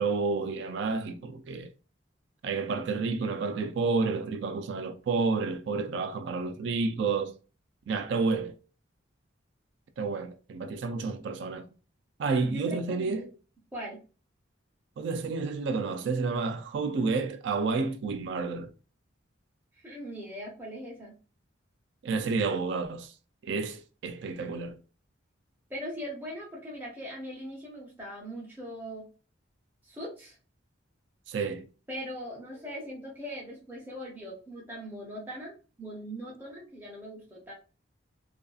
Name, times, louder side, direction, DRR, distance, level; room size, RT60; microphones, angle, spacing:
voice 1, 0.0-1.7 2.4-7.3 7.9-8.5 10.0-11.7 12.2-13.3 15.0-18.7 22.0-23.1 23.4-24.8 31.3-31.6, right 4 dB, 60° right, 0.3 m, -30 dB
voice 2, 12.3-13.2 13.7-14.0 19.7-21.1 25.7-29.1 29.8-30.4 31.9-37.5, equal, 10° right, 0.6 m, -40 dB
2.5 x 2.4 x 2.3 m
head